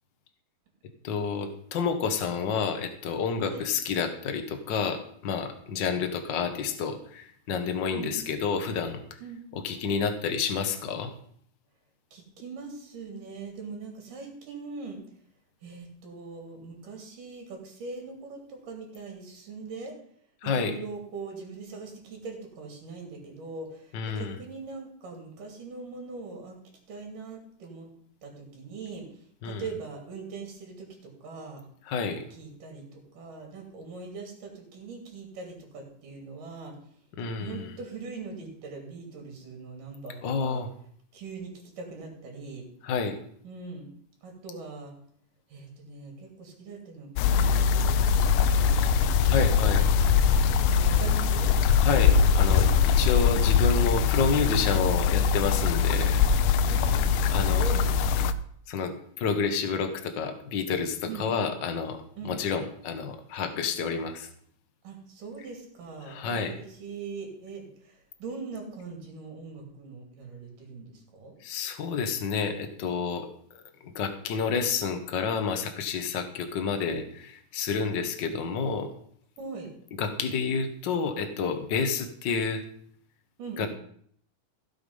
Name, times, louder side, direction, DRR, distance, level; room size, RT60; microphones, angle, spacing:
voice 1, 1.0-9.0 9.5-11.1 20.4-20.7 23.9-24.4 29.4-29.7 31.8-32.2 37.2-37.7 40.2-40.7 42.8-43.2 49.2-49.9 51.8-56.2 57.3-57.6 58.7-64.3 66.0-66.5 71.4-78.9 80.0-82.6 83.6-83.7, left 5 dB, 60° left, 6 dB, 1.2 m, -29 dB
voice 2, 12.1-15.0 15.6-20.0 20.4-26.6 26.9-27.9 28.2-29.1 29.4-31.6 32.4-36.7 37.4-40.6 41.1-42.7 43.4-43.9 44.2-44.9 45.5-49.7 50.7-51.6 56.6-57.9 61.1-61.3 62.2-62.3 64.8-71.3 79.4-79.7 83.4-83.7, right 4 dB, 70° right, 1 dB, 4.2 m, -41 dB
sound 1, 47.2-58.3, left 6 dB, 80° left, 2.1 m, -22 dB
16.0 x 7.0 x 5.5 m, 0.63 s
omnidirectional pair, 3.9 m